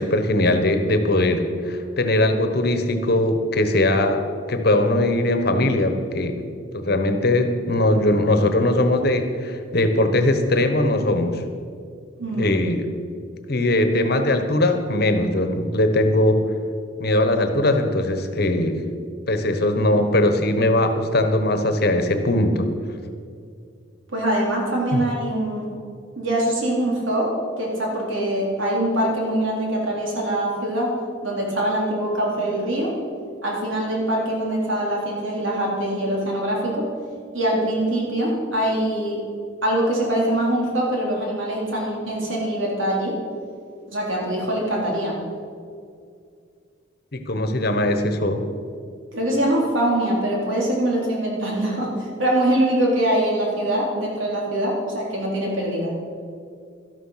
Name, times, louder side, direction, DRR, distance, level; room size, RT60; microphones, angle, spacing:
voice 1, 0.0-6.4 6.7-11.4 12.3-12.9 13.5-16.4 17.0-18.8 19.3-22.7 24.9-25.0 47.1-48.4, left 1 dB, 50° left, 7 dB, 1.2 m, -20 dB
voice 2, 12.2-12.5 24.1-25.7 26.2-31.0 31.2-32.9 33.4-36.9 37.3-39.2 39.6-43.2 43.9-45.2 49.1-55.9, right 1 dB, 75° right, -2 dB, 3.8 m, -23 dB
13.0 x 11.5 x 5.8 m, 2.3 s
head